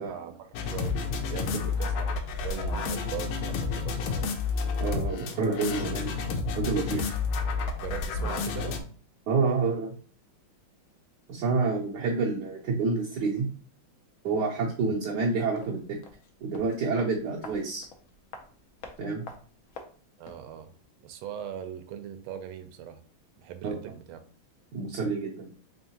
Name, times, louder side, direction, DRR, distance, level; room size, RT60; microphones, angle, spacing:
voice 1, 0.0-4.4 7.8-8.8 14.8-15.0 20.2-20.7 21.0-23.0 23.4-24.2, right 9 dB, 85° right, 8 dB, 1.4 m, -40 dB
sound 1, 0.5-8.8, left 4 dB, 85° left, 1.5 m, -30 dB
voice 2, 4.8-6.1 6.6-7.2 9.3-9.9 11.3-13.4 14.2-15.8 16.4-17.9 19.0-19.2 23.6-23.8 24.7-25.5, right 4 dB, 65° right, -2 dB, 1.2 m, -28 dB
sound 2, 15.5-20.5 20.8-20.9, left 4 dB, 65° left, 0.8 m, -48 dB
3.7 x 3.5 x 2.8 m, 0.42 s
omnidirectional pair, 2.2 m